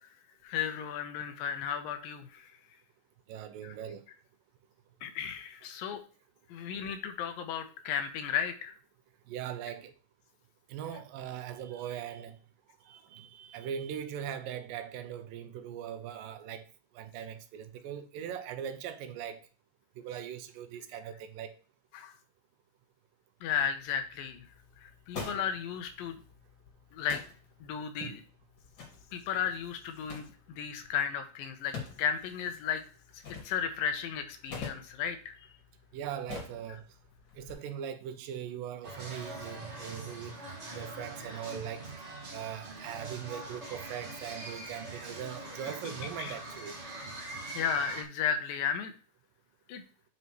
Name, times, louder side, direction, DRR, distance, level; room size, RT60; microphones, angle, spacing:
voice 1, 0.4-2.5 3.6-3.8 5.0-6.0 6.5-8.7 21.9-22.1 23.4-24.5 24.8-26.2 26.9-27.2 27.6-28.2 29.1-32.8 33.1-35.5 36.7-36.8 45.8-45.9 46.2-46.4 47.5-48.9 49.7-49.8, left 8 dB, 85° left, 2.6 m, -34 dB
voice 2, 3.3-4.0 9.3-9.9 10.7-12.4 12.9-16.6 17.0-19.4 20.0-21.5 28.0-28.2 35.9-36.8 37.4-40.4 40.7-41.8 42.3-46.8, right 9 dB, 80° right, 2.4 m, -40 dB
sound 1, 23.4-37.5, left 5 dB, 40° left, 2.1 m, -48 dB
sound 2, 38.8-48.0, right 2 dB, 30° right, 1.3 m, -43 dB
8.2 x 5.8 x 3.0 m
omnidirectional pair, 4.0 m